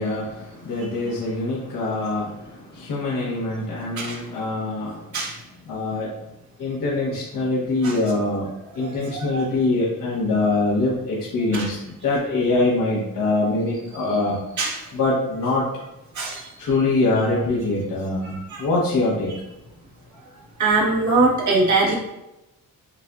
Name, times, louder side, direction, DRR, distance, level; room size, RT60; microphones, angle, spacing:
voice 1, 0.0-5.1 5.7-6.1 6.6-14.4 14.9-15.6 16.6-19.3, left 2 dB, 65° left, -6 dB, 1.2 m, -24 dB
voice 2, 8.8-9.5 11.5-11.7 14.6-14.8 16.1-16.5 18.5-18.6 20.6-21.9, right 3 dB, 55° right, -4 dB, 1.4 m, -22 dB
7.2 x 2.6 x 2.3 m, 0.93 s
cardioid pair, 105°, 35 cm